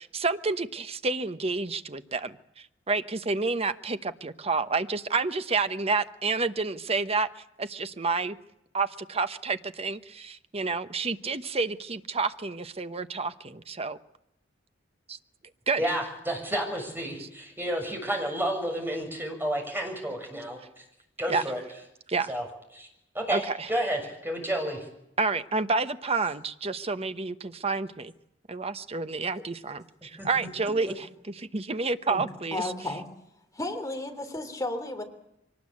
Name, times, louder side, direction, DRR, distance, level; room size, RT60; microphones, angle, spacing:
voice 1, 0.0-8.4 8.7-14.0 15.1-15.2 15.7-15.8 17.2-17.3 21.3-21.4 22.1-22.3 23.3-23.7 25.2-28.1 28.5-32.7, right 4 dB, 30° right, 11 dB, 1.0 m, -29 dB
voice 2, 15.8-20.8 21.2-21.6 22.3-22.4 22.7-22.9 23.1-24.8 30.2-30.3, right 1 dB, 10° right, 2 dB, 6.9 m, -31 dB
voice 3, 32.5-33.0 33.5-35.0, left 2 dB, 15° left, 5 dB, 3.3 m, -33 dB
24.0 x 19.0 x 8.6 m, 0.81 s
head